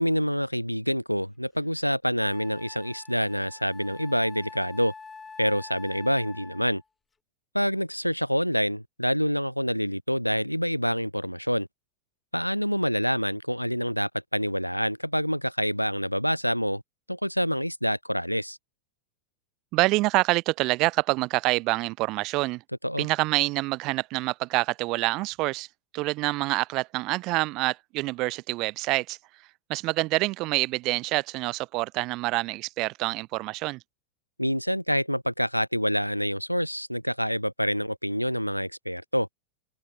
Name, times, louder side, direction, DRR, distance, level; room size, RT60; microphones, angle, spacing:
voice 1, 0.0-4.9 5.4-6.8 7.5-11.7 12.3-16.8 17.1-18.6 22.8-23.1 34.4-39.3, equal, 90° left, 0.3 m, -27 dB
Wind instrument woodwind instrument, 1.6-1.7 2.2-6.8, left 4 dB, 15° left, 2.6 m, -46 dB
voice 2, 19.7-22.6 23.0-25.7 25.9-33.8, right 21 dB, 40° right, 0.5 m, -27 dB
figure-of-eight pair, 90°, 0 cm